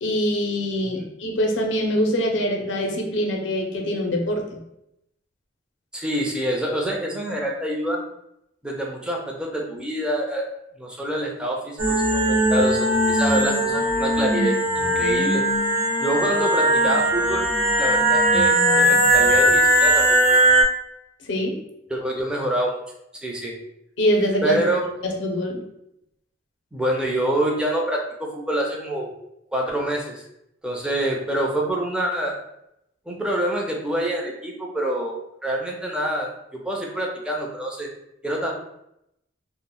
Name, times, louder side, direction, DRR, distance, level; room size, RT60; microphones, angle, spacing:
voice 1, 0.0-4.6 21.2-21.6 24.0-24.6 25.0-25.6, equal, 70° left, 2 dB, 0.5 m, -24 dB
voice 2, 5.9-8.0 8.6-10.5 10.8-15.4 16.0-17.5 17.8-20.3 21.9-22.8 23.2-23.6 24.4-24.8 26.7-29.1 29.5-30.2 30.6-32.3 33.1-37.9 38.2-38.5, right 1 dB, 5° right, -1 dB, 0.4 m, -26 dB
sound 1, 11.8-20.6, right 1 dB, 65° right, 0.9 m, -19 dB
2.1 x 2.0 x 3.6 m, 0.81 s
head